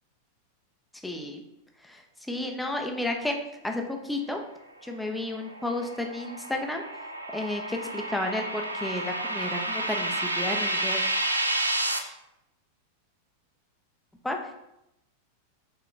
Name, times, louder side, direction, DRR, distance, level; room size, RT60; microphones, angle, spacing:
voice 1, 1.0-1.4 1.8-2.0 2.3-3.4 3.6-4.4 4.8-6.8 7.3-11.0 14.2-14.4, left 1 dB, 5° left, 3 dB, 0.5 m, -32 dB
sound 1, 5.2-12.0, right 1 dB, 85° right, 0.4 m, -30 dB
3.8 x 3.2 x 3.0 m, 0.86 s
figure-of-eight pair, 90°, 0 cm